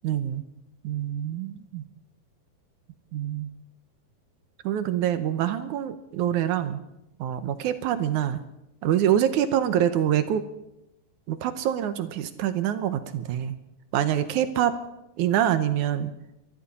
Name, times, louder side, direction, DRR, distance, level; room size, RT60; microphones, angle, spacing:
voice 1, 0.0-0.4 0.8-1.8 3.1-3.5 4.6-6.8 7.2-8.4 8.8-10.4 11.3-13.6 13.9-14.8 15.2-16.1, right 10 dB, 75° right, 10 dB, 2.0 m, -25 dB
24.0 x 13.0 x 4.2 m, 0.88 s
omnidirectional pair, 4.1 m